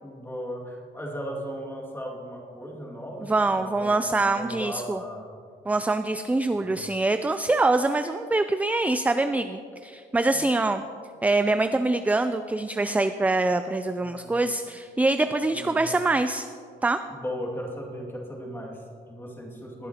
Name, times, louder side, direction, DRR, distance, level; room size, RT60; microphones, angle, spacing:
voice 1, 0.0-5.4 6.5-6.8 10.3-10.6 14.0-14.4 15.2-16.0 17.1-19.9, equal, 10° left, -1 dB, 2.2 m, -37 dB
voice 2, 3.2-5.0 5.7-10.8 11.2-16.5 16.8-17.0, right 2 dB, 10° right, 10 dB, 0.3 m, -24 dB
20.5 x 7.7 x 2.9 m, 2.3 s
cardioid pair, 90°, 20 cm